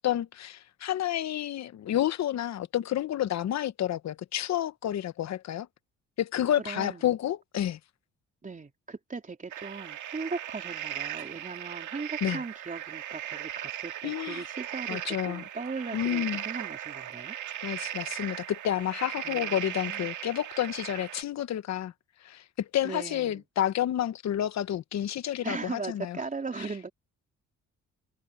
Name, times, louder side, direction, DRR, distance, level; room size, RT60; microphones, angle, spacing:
voice 1, 0.0-5.7 6.2-7.8 12.2-12.4 14.0-14.5 14.9-15.4 15.9-16.4 17.6-21.9 22.2-26.2, left 11 dB, 65° left, 1.0 m, -30 dB
voice 2, 6.6-7.0 8.4-17.4 19.2-20.1 22.8-23.4 25.4-26.9, right 4 dB, 25° right, 3.6 m, -38 dB
sound 1, 9.5-21.2, right 11 dB, 75° right, 2.1 m, -37 dB
cardioid pair, 90°, 30 cm